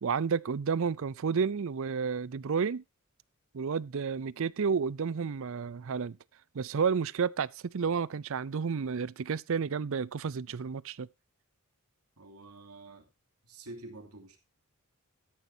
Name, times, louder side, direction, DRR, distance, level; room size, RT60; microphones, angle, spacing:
voice 1, 0.0-2.8 3.5-6.2 6.5-11.1, right 6 dB, 60° right, 0.5 m, -31 dB
voice 2, 12.2-13.1 13.4-14.4, right 2 dB, 85° right, 2.9 m, -48 dB
13.0 x 11.0 x 2.8 m
head